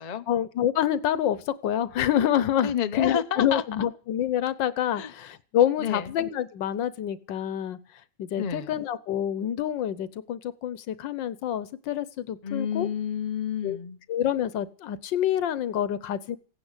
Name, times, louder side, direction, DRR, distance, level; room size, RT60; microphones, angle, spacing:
voice 1, 0.3-7.8 8.2-12.9 13.6-13.8 14.1-16.4, left 10 dB, 85° left, 16 dB, 1.6 m, -27 dB
voice 2, 2.6-3.6 4.9-5.1 5.8-6.1 8.3-8.8 12.4-14.0, left 8 dB, 35° left, 9 dB, 0.6 m, -30 dB
16.0 x 10.0 x 8.1 m, 0.40 s
omnidirectional pair, 1.9 m